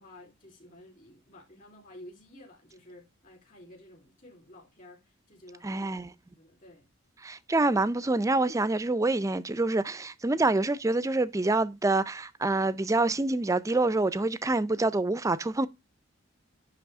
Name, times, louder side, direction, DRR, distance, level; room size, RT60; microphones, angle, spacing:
voice 1, 0.0-5.9 6.4-6.9, left 1 dB, 40° left, 3.5 m, -52 dB
voice 2, 5.6-6.1 7.2-15.7, right 2 dB, 15° right, 0.4 m, -26 dB
10.0 x 3.4 x 3.4 m
head